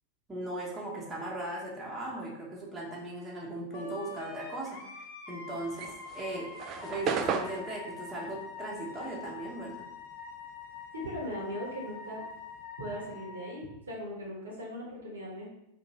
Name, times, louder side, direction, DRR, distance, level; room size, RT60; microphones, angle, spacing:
voice 1, 0.3-4.8 5.3-5.9 6.1-6.5 6.8-9.7, right 1 dB, 15° right, -4 dB, 0.9 m, -38 dB
Wind instrument woodwind instrument, 3.7-13.6, left 5 dB, 50° left, 0.6 m, -45 dB
sound 1, 5.6-10.4 10.6-12.6, right 6 dB, 35° right, 0.3 m, -36 dB
voice 2, 11.0-12.2 12.8-15.5, equal, 70° right, -3 dB, 1.2 m, -39 dB
3.0 x 2.9 x 4.0 m, 0.82 s
figure-of-eight pair, 90°, 0 cm